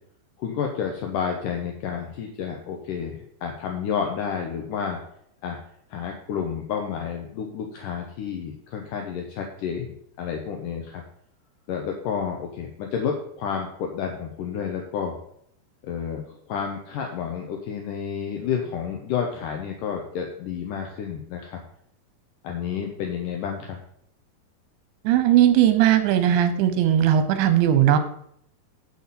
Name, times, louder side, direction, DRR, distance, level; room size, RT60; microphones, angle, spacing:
voice 1, 0.4-5.0 5.4-5.6 5.9-11.0 11.7-15.2 15.8-21.6 22.4-23.8, left 7 dB, 75° left, 2 dB, 2.0 m, -30 dB
voice 2, 25.0-28.0, right 11 dB, 85° right, 10 dB, 3.2 m, -18 dB
9.1 x 8.4 x 4.1 m, 0.69 s
omnidirectional pair, 5.0 m